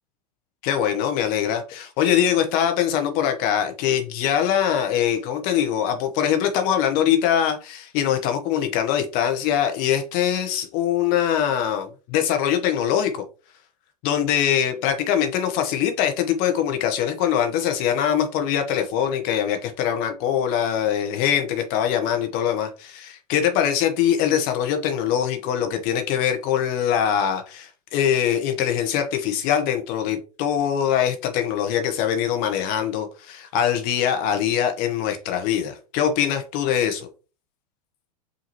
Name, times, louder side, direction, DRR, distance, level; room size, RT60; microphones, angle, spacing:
voice 1, 0.6-13.2 14.0-37.1, left 9 dB, 45° left, 0.8 m, -23 dB
5.1 x 2.6 x 2.9 m
hypercardioid pair, 95°, 21 cm